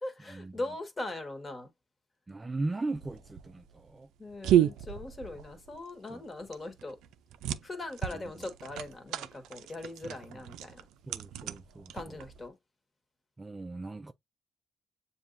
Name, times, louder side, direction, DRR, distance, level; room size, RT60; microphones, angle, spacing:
voice 1, 0.0-1.7 4.2-7.0 7.6-10.9 11.9-12.5, left 2 dB, 25° left, 1.5 m, -40 dB
voice 2, 2.3-4.1 6.1-6.2 8.1-8.2 11.1-12.2 13.4-14.1, right 2 dB, 20° right, 0.3 m, -38 dB
sound 1, 2.9-12.5, right 11 dB, 90° right, 0.4 m, -33 dB
7.2 x 2.7 x 2.6 m
cardioid pair, 90°, 0 cm